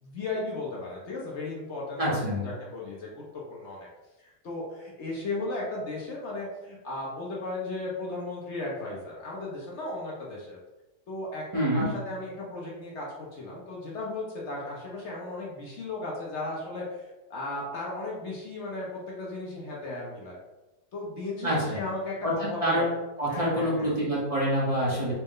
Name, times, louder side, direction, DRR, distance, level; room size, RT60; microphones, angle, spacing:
voice 1, 0.0-3.9 4.2-10.6 11.1-20.4 20.9-22.9 23.3-23.9, left 2 dB, 60° left, -4 dB, 0.7 m, -36 dB
voice 2, 2.0-2.4 11.5-11.9 21.4-21.8 22.2-22.9 23.2-25.1, equal, 40° right, -7 dB, 0.5 m, -26 dB
4.2 x 2.1 x 3.6 m, 1.1 s
omnidirectional pair, 1.9 m